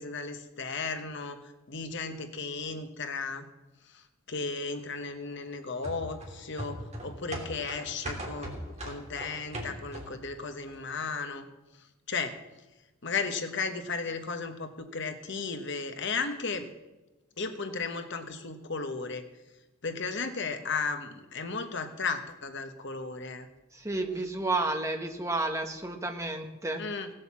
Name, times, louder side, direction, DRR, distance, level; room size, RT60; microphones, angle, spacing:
voice 1, 0.0-3.5 3.8-11.4 11.8-12.4 13.0-16.7 17.4-19.2 19.8-23.5 26.8-27.1, left 4 dB, 55° left, 7 dB, 1.2 m, -35 dB
sound 1, 5.8-10.3 10.7-10.8, right 1 dB, 30° right, 2.9 m, -39 dB
voice 2, 23.7-26.8, right 2 dB, 15° right, 4 dB, 1.3 m, -31 dB
17.5 x 7.8 x 7.4 m, 1.1 s
head